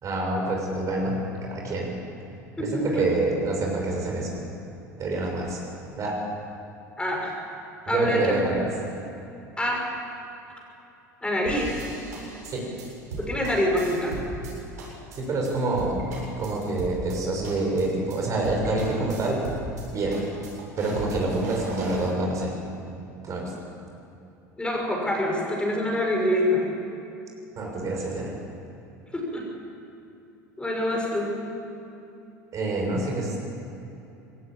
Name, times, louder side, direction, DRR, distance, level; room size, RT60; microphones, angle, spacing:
voice 1, 0.0-1.1 1.5-1.9 2.6-4.4 5.0-5.6 5.9-6.1 7.9-8.6 12.5-12.6 15.2-16.0 16.4-19.4 19.9-20.2 20.8-22.5 23.2-23.5 27.6-28.3 32.5-33.4, right 2 dB, 35° right, -1 dB, 6.5 m, -27 dB
voice 2, 2.6-3.0 7.0-7.3 7.8-8.4 9.6-9.9 11.2-11.8 13.2-14.2 24.6-26.7 29.1-29.4 30.6-31.3, left 1 dB, 10° left, -1 dB, 6.0 m, -25 dB
sound 1, 11.5-14.5 14.8-15.2 15.4-15.5 15.8-17.2 17.4-17.8 18.1-18.2 18.4-19.8 20.1-22.1, right 2 dB, 70° right, 7.6 m, -37 dB
22.0 x 18.0 x 8.8 m, 2.9 s
figure-of-eight pair, 75°, 9 cm